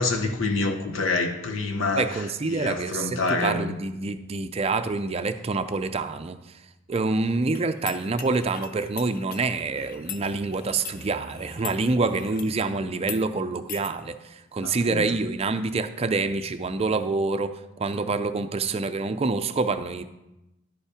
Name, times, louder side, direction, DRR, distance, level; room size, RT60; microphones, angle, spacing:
voice 1, 0.0-2.1 2.5-3.7 14.6-15.1, left 3 dB, 80° left, 1.1 m, -27 dB
voice 2, 1.9-6.6 6.9-20.0, right 3 dB, 30° right, 0.4 m, -27 dB
sound 1, 7.5-12.6 13.0-13.2 13.7-13.9, left 9 dB, 45° left, 0.5 m, -41 dB
11.0 x 5.4 x 5.0 m
head